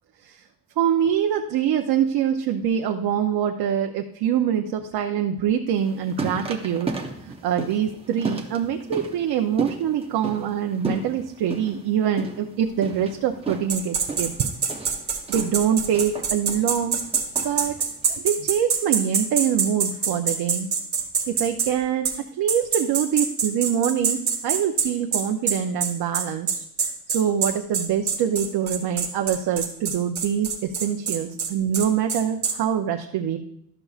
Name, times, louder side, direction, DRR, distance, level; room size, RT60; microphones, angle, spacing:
voice 1, 0.8-6.9 7.2-14.5 15.3-17.0 17.4-17.8 18.1-20.7 21.3-26.6 27.1-33.4, right 9 dB, 85° right, 5 dB, 0.6 m, -24 dB
sound 1, 5.7-18.0, right 3 dB, 15° right, 0.7 m, -34 dB
sound 2, 13.7-21.7 22.0-22.2 22.5-32.6, right 6 dB, 45° right, 1.2 m, -25 dB
12.0 x 6.8 x 2.4 m, 0.73 s
wide cardioid pair, 170°, 37 cm